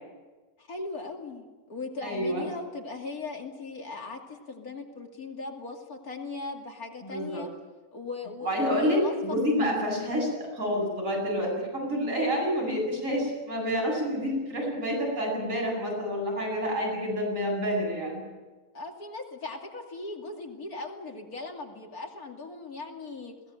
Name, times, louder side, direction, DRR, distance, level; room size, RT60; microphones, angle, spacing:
voice 1, 0.6-7.5 7.9-9.1 18.7-23.3, left 3 dB, 85° left, 2 dB, 3.1 m, -38 dB
voice 2, 2.0-2.4 7.0-7.4 8.4-18.2, equal, 60° right, -1 dB, 8.5 m, -28 dB
21.5 x 18.0 x 9.1 m, 1.3 s
omnidirectional pair, 1.5 m